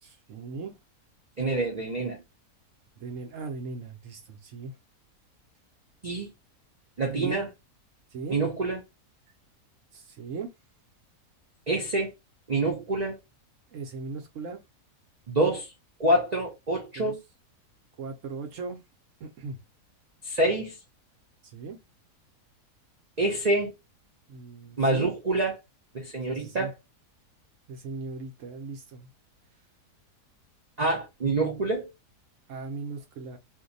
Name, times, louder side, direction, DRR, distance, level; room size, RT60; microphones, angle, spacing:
voice 1, 0.0-0.7 3.0-4.7 7.1-7.5 8.1-8.4 9.9-10.5 13.7-14.6 17.0-17.1 18.0-18.8 19.2-19.6 21.5-21.8 24.3-25.1 26.3-26.7 27.7-29.1 32.5-33.4, right 4 dB, 60° right, 0.9 m, -38 dB
voice 2, 1.4-2.2 6.0-6.3 7.0-7.5 8.3-8.8 11.7-12.1 12.5-13.2 15.3-15.7 16.0-17.2 20.2-20.8 23.2-23.7 24.8-25.6 25.9-26.8 30.8-31.9, right 2 dB, 90° right, 0.3 m, -26 dB
2.6 x 2.2 x 3.8 m
omnidirectional pair, 1.7 m